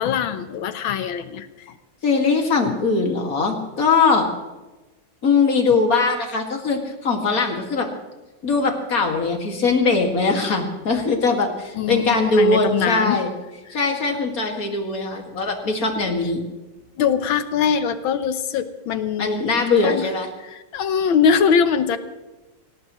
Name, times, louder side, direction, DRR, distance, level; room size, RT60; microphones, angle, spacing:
voice 1, 0.0-1.7 2.7-2.8 11.7-13.2 13.7-13.8 17.0-19.4 19.8-20.1 20.4-22.0, left 7 dB, 85° left, 10 dB, 1.8 m, -22 dB
voice 2, 2.0-4.3 5.2-7.9 8.4-13.3 13.7-16.4 19.2-20.3, left 4 dB, 45° left, 2 dB, 2.5 m, -21 dB
25.0 x 18.5 x 3.1 m, 1.1 s
omnidirectional pair, 2.1 m